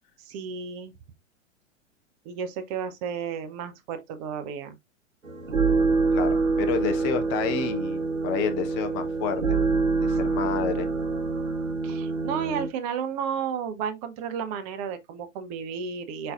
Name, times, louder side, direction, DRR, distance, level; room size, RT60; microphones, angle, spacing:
voice 1, 0.2-0.9 2.2-4.8 10.1-10.2 11.8-16.3, right 7 dB, 30° right, 0.7 m, -33 dB
sound 1, 5.2-12.7, right 4 dB, 85° right, 0.9 m, -26 dB
voice 2, 6.1-9.6 10.0-10.9, left 7 dB, 20° left, 0.4 m, -30 dB
4.2 x 3.9 x 2.4 m
figure-of-eight pair, 105°, 38 cm